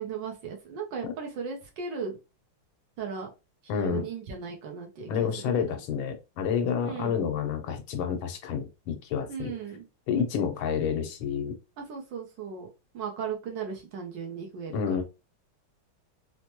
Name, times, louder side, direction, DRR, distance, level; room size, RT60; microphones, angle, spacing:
voice 1, 0.0-2.2 3.0-3.3 3.7-5.3 6.8-7.2 9.3-9.9 11.8-12.7 12.9-15.0, right 6 dB, 70° right, 1 dB, 1.4 m, -36 dB
voice 2, 3.7-4.1 5.1-9.5 10.1-11.6 14.7-15.0, left 7 dB, 85° left, 5 dB, 1.6 m, -29 dB
4.4 x 2.1 x 2.9 m, 0.28 s
omnidirectional pair, 2.2 m